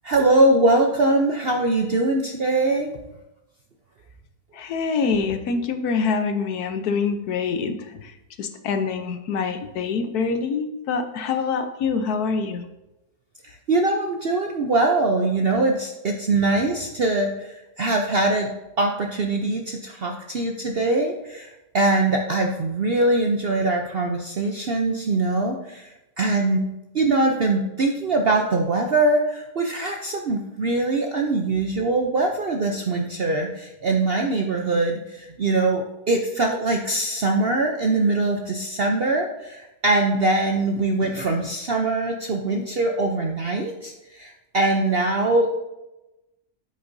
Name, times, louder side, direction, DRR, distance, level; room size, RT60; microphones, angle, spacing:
voice 1, 0.0-3.0 13.4-18.5 18.8-26.6 26.9-45.6, right 2 dB, 55° right, 2 dB, 0.6 m, -22 dB
voice 2, 4.6-7.8 8.4-12.6, left 5 dB, 70° left, 8 dB, 1.2 m, -25 dB
8.8 x 8.8 x 2.7 m, 0.97 s
omnidirectional pair, 1.7 m